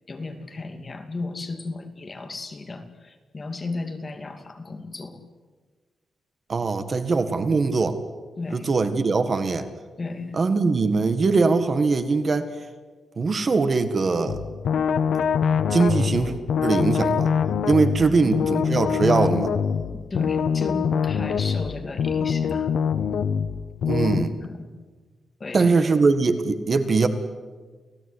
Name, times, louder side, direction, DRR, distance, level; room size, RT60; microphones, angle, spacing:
voice 1, 0.1-5.2 8.4-8.7 10.0-10.4 18.0-18.7 19.9-22.7 24.4-24.6 25.4-25.7, left 3 dB, 30° left, 6 dB, 2.6 m, -34 dB
voice 2, 6.5-8.0 8.5-9.7 10.3-12.5 13.2-14.4 15.7-16.3 16.6-17.3 17.7-19.5 23.9-24.3 25.5-27.1, right 4 dB, 35° right, 9 dB, 1.7 m, -21 dB
sound 1, 14.3-24.2, left 7 dB, 85° left, 1.2 m, -24 dB
30.0 x 17.5 x 10.0 m, 1.4 s
wide cardioid pair, 155°, 0 cm